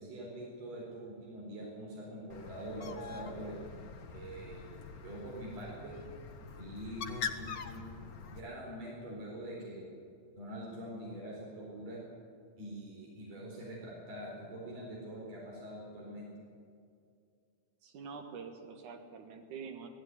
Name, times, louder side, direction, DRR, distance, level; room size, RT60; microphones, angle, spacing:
voice 1, 0.0-3.5 4.1-6.0 6.6-8.0 8.3-9.9 10.4-12.0 12.6-16.3, right 1 dB, 60° right, -4 dB, 5.6 m, -44 dB
Bird, 2.3-8.4, left 6 dB, 65° left, 0.9 m, -44 dB
voice 2, 17.8-19.9, right 5 dB, 85° right, 4 dB, 3.0 m, -46 dB
18.0 x 15.0 x 9.6 m, 2.3 s
omnidirectional pair, 3.4 m